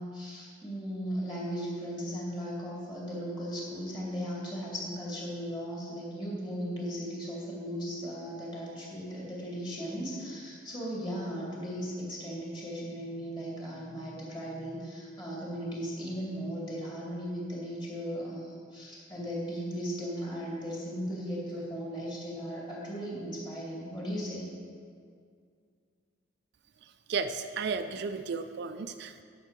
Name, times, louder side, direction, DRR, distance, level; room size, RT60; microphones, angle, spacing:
voice 1, 0.0-24.5, equal, 25° left, -5 dB, 2.6 m, -37 dB
voice 2, 27.1-29.2, right 5 dB, 60° right, 8 dB, 0.4 m, -33 dB
11.0 x 6.5 x 5.2 m, 2.2 s
head